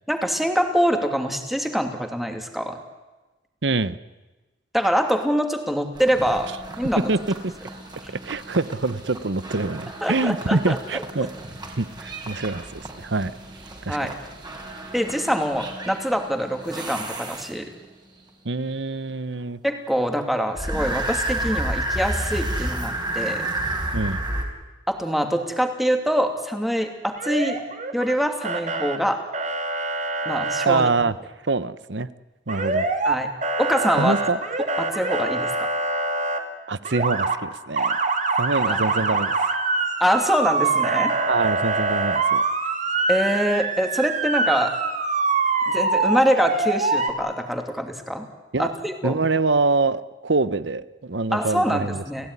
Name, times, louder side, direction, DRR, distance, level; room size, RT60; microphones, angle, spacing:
voice 1, 0.1-2.8 4.7-6.5 6.8-7.1 8.0-8.1 10.0-10.8 13.9-14.1 14.9-17.7 19.6-23.5 24.9-27.6 27.9-29.2 30.2-30.9 33.0-33.3 33.6-34.2 34.8-35.7 38.7-38.8 40.0-41.1 43.1-44.7 45.7-48.3 48.6-49.1 51.3-52.3, equal, ahead, 4 dB, 2.8 m, -24 dB
voice 2, 3.6-4.0 7.1-7.2 8.2-11.3 11.8-13.3 13.8-14.1 18.4-19.6 23.9-24.2 30.7-31.1 31.5-32.1 32.5-32.9 34.0-34.4 36.7-38.0 38.4-39.3 41.3-42.4 48.5-48.7 49.0-52.0, right 3 dB, 70° right, 15 dB, 1.0 m, -25 dB
sound 1, 5.9-17.8 20.5-24.4, right 1 dB, 25° right, 4.5 m, -32 dB
Motor vehicle (road) / Siren, 27.2-28.1 28.4-29.0 29.3-30.7 32.5-33.2 33.4-36.4 36.8-37.4 37.8-47.1, right 3 dB, 40° right, 2.7 m, -24 dB
30.0 x 16.5 x 9.8 m, 1.2 s
head